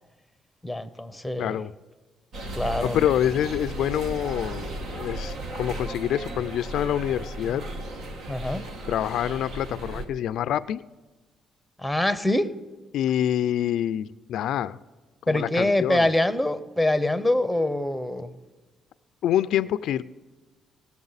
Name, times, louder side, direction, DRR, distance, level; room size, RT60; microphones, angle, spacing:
voice 1, 0.6-1.6 2.6-3.0 8.3-8.6 11.8-12.6 15.3-18.3, left 1 dB, ahead, 0.8 m, -24 dB
voice 2, 1.4-1.7 2.8-7.6 8.9-10.8 12.9-14.8 15.3-16.1 19.2-20.0, left 11 dB, 80° left, 0.3 m, -26 dB
sound 1, 2.3-10.1, right 1 dB, 75° right, 1.4 m, -35 dB
19.0 x 7.1 x 4.1 m
cardioid pair, 90°, 0 cm